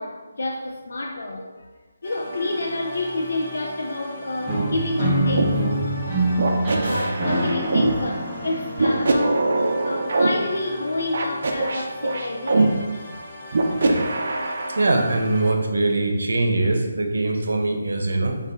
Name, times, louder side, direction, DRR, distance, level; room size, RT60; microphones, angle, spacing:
voice 1, 0.0-1.7 2.0-5.6 6.0-6.1 6.8-9.5 9.8-12.9, left 2 dB, 70° left, 1 dB, 0.4 m, -29 dB
sound 1, 2.0-15.5, equal, 35° left, 0.8 m, -39 dB
sound 2, 4.5-10.4, right 1 dB, 10° right, 0.8 m, -26 dB
sound 3, 5.4-5.5 6.4-7.9 8.8-10.3 11.1-12.7 13.5-14.8, right 3 dB, 50° right, 0.5 m, -22 dB
voice 2, 14.8-18.4, right 2 dB, 85° right, 3 dB, 0.7 m, -22 dB
5.3 x 2.4 x 3.6 m, 1.3 s
hypercardioid pair, 175°, 0 cm